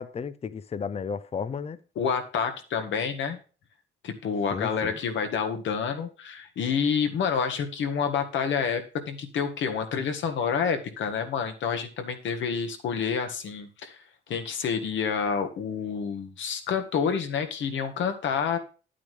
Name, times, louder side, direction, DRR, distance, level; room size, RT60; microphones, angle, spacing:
voice 1, 0.0-1.8 4.5-5.0, left 6 dB, 30° left, 0.6 m, -33 dB
voice 2, 1.9-3.4 4.0-14.0 14.3-18.6, left 6 dB, 70° left, 1.8 m, -28 dB
10.0 x 8.6 x 3.3 m
cardioid pair, 90°, 20 cm